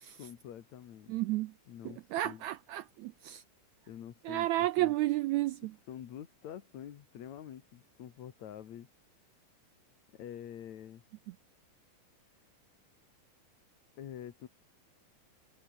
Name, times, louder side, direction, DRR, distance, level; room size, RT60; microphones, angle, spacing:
voice 1, 0.2-1.2 1.7-2.4 3.9-4.9 5.9-8.9 10.1-11.0 14.0-14.5, left 10 dB, 60° left, 2.8 m, -47 dB
voice 2, 1.1-1.5 2.1-3.4 4.2-5.7, right 16 dB, 85° right, 1.6 m, -31 dB
omnidirectional pair, 3.9 m